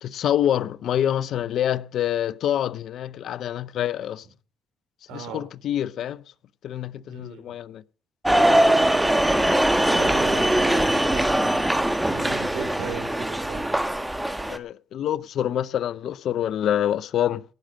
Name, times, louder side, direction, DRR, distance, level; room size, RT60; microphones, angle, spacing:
voice 1, 0.0-4.2 5.1-6.2 6.6-7.8 14.4-17.4, left 10 dB, 65° left, 0.6 m, -26 dB
voice 2, 5.1-5.4 7.1-7.4 9.8-11.7 12.1-13.7, right 5 dB, 85° right, 4.8 m, -36 dB
sound 1, 8.2-14.6, right 1 dB, 10° right, 1.4 m, -21 dB
18.0 x 6.5 x 6.3 m
supercardioid pair, 70°, 0 cm